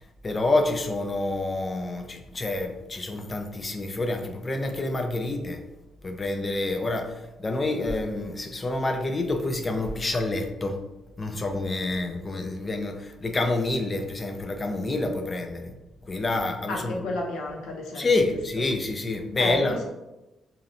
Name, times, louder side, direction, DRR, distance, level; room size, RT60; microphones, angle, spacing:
voice 1, 0.2-5.6 6.0-10.8 11.2-15.7 16.0-17.0 18.0-19.8, left 2 dB, 30° left, 4 dB, 0.3 m, -28 dB
voice 2, 16.7-18.1 19.4-19.8, left 1 dB, 85° left, 0 dB, 0.5 m, -31 dB
2.6 x 2.0 x 2.6 m, 1.0 s
cardioid pair, 90°, 0 cm